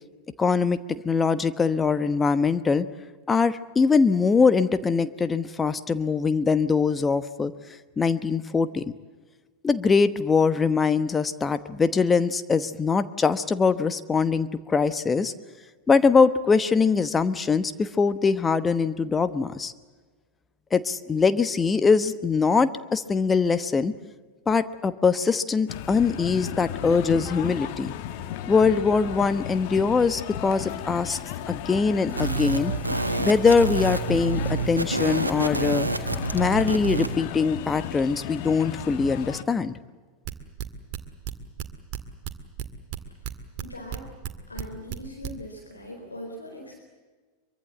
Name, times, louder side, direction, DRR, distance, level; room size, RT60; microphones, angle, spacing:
voice 1, 0.4-2.9 3.3-7.5 8.0-8.8 9.6-15.3 15.9-19.7 20.7-23.9 24.5-27.9 28.5-31.2 31.5-32.7 33.2-35.9 36.3-39.7, left 5 dB, 20° left, 12 dB, 1.0 m, -22 dB
sound 1, 25.7-39.4, left 10 dB, 55° left, 1.5 m, -35 dB
sound 2, 32.1-37.1, right 3 dB, 90° right, 1.6 m, -28 dB
sound 3, 40.2-42.0 42.2-44.0 44.2-45.3, right 10 dB, 50° right, 2.0 m, -33 dB
voice 2, 43.6-44.2 44.5-46.7, left 1 dB, 90° left, 2 dB, 4.3 m, -40 dB
23.5 x 23.5 x 7.7 m, 1.4 s
figure-of-eight pair, 90°, 0 cm